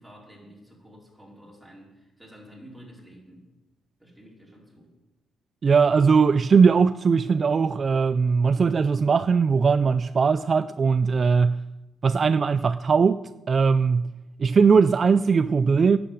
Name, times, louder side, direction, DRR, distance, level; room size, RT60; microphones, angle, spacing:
voice 1, 0.0-3.5 4.0-4.9, equal, ahead, 4.5 m, -49 dB
voice 2, 5.6-11.6 12.0-13.2 13.5-14.1 14.4-16.0, right 5 dB, 40° right, 0.3 m, -20 dB
10.0 x 7.7 x 8.1 m
cardioid pair, 90°, 0 cm